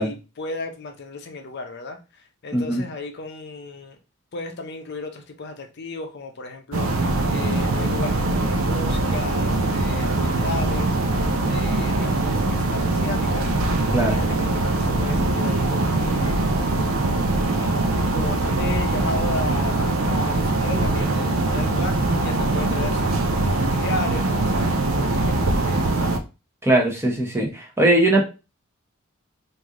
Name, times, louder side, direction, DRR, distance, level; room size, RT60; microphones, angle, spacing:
voice 1, 0.0-4.0 4.3-11.2 11.5-16.5 17.3-26.1, left 3 dB, 55° left, 0.6 m, -35 dB
voice 2, 2.5-2.8 13.9-14.2 26.6-28.2, right 1 dB, 15° right, 0.9 m, -20 dB
sound 1, 6.7-26.2, right 2 dB, 85° right, 0.5 m, -22 dB
3.2 x 2.6 x 3.6 m
head